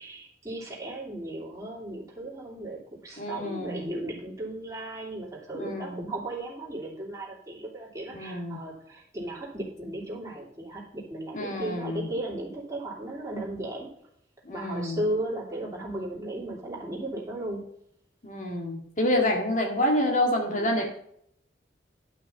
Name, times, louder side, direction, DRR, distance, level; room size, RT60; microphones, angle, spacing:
voice 1, 0.0-13.9 14.5-17.6 19.0-19.4 20.5-20.8, right 1 dB, 15° right, -4 dB, 2.9 m, -36 dB
voice 2, 3.2-3.9 5.5-6.0 8.1-8.6 11.3-12.1 14.4-15.0 18.2-20.8, left 1 dB, 40° left, 2 dB, 1.9 m, -28 dB
10.5 x 5.9 x 5.5 m, 0.70 s
head